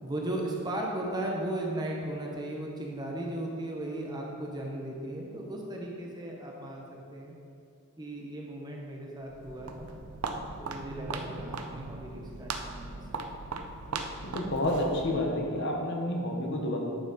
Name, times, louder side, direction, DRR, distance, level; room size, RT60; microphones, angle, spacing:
voice 1, 0.0-6.8 7.1-7.3 8.0-9.9 10.6-12.9 13.1-13.4, right 1 dB, 20° right, -1 dB, 0.9 m, -36 dB
Walk footsteps, 9.2-15.4, right 3 dB, 85° right, 0.6 m, -39 dB
voice 2, 14.2-16.8, left 1 dB, 55° left, 0 dB, 1.1 m, -29 dB
10.5 x 5.9 x 4.1 m, 2.5 s
head